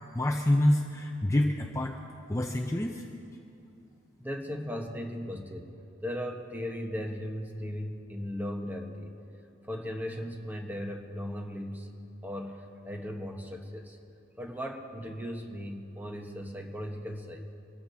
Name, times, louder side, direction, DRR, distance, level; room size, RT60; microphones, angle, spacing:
voice 1, 0.1-2.0 2.3-3.0, left 1 dB, 15° left, 2 dB, 0.6 m, -27 dB
voice 2, 4.2-5.7 6.0-9.1 9.6-11.9 12.2-14.0 14.4-17.4, equal, 10° right, 2 dB, 1.2 m, -37 dB
24.5 x 14.5 x 2.8 m, 2.6 s
head